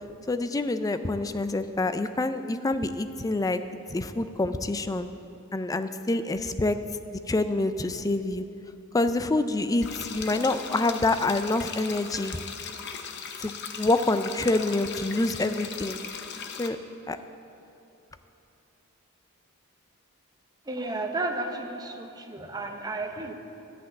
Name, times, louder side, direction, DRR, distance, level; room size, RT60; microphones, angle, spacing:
voice 1, 0.3-3.6 3.9-5.1 5.5-6.8 7.3-8.4 8.9-12.4 13.4-16.0 16.6-16.8 17.1-17.2, left 2 dB, 15° left, 10 dB, 0.3 m, -26 dB
sound 1, 9.8-16.7, left 6 dB, 50° left, 0.7 m, -38 dB
voice 2, 20.7-23.3, right 2 dB, 20° right, 4 dB, 0.7 m, -33 dB
11.0 x 5.9 x 8.6 m, 2.9 s
head